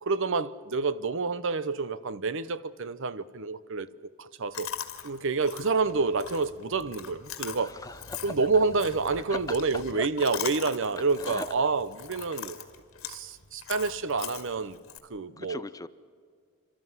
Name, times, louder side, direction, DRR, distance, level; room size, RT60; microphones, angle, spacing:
voice 1, 0.0-3.9 4.2-4.7 5.0-7.8 8.2-12.6 13.0-14.8 15.1-15.6, right 4 dB, 65° right, 0.8 m, -28 dB
Chewing mastication, 4.5-15.0, left 8 dB, 85° left, 2.0 m, -41 dB
voice 2, 7.6-8.3 9.3-9.4 9.9-10.1 10.9-11.5 15.4-15.9, left 3 dB, 15° left, 0.6 m, -39 dB
29.5 x 13.0 x 9.5 m
head